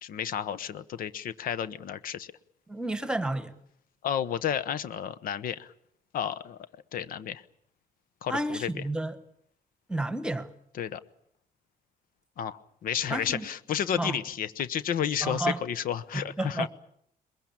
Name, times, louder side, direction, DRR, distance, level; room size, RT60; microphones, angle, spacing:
voice 1, 0.0-2.3 4.0-5.7 6.1-6.6 6.9-7.4 8.2-8.8 10.8-11.0 12.4-16.7, left 9 dB, 70° left, 1.0 m, -31 dB
voice 2, 2.7-3.5 8.3-9.1 9.9-10.5 13.1-13.5 14.0-14.2 15.2-15.6 16.1-16.7, right 1 dB, 5° right, 1.3 m, -31 dB
22.5 x 21.5 x 8.7 m
cardioid pair, 150°, 15 cm